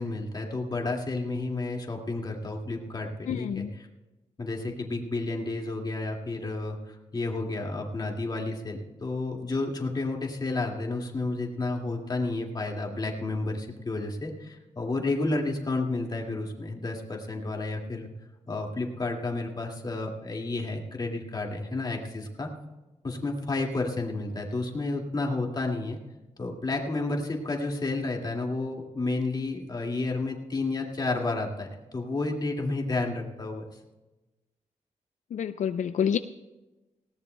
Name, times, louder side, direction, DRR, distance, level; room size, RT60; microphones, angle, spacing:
voice 1, 0.0-3.6 4.4-18.1 18.5-22.5 23.0-26.0 26.4-33.6, left 2 dB, 35° left, 1 dB, 2.1 m, -31 dB
voice 2, 3.3-3.7 35.3-36.2, left 8 dB, 80° left, 10 dB, 0.4 m, -28 dB
19.5 x 17.5 x 2.2 m, 1.1 s
wide cardioid pair, 140°, 12 cm